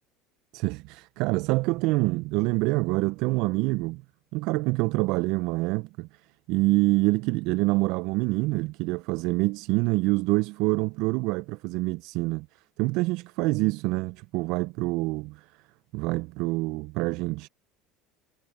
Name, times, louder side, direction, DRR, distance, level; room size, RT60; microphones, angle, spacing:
voice 1, 0.5-4.0 4.3-6.1 6.5-12.5 12.8-15.5 15.9-17.5, right 23 dB, 60° right, 0.8 m, -26 dB
hypercardioid pair, 75°, 0 cm